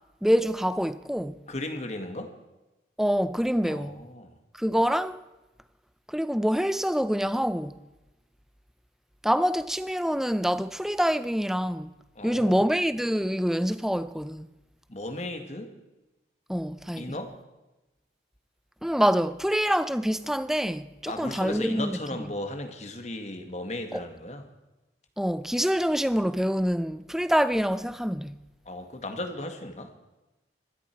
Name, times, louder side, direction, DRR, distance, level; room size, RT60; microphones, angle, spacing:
voice 1, 0.2-1.4 3.0-4.0 4.6-5.2 6.1-7.8 9.2-11.9 12.2-14.5 16.5-17.2 18.8-22.3 23.9-24.0 25.2-28.4, equal, ahead, 0.5 m, -26 dB
voice 2, 1.5-2.3 3.7-4.3 12.2-12.6 14.9-15.7 17.0-17.4 21.1-24.5 28.7-29.9, left 1 dB, 40° left, 1.9 m, -36 dB
25.0 x 13.0 x 4.6 m
head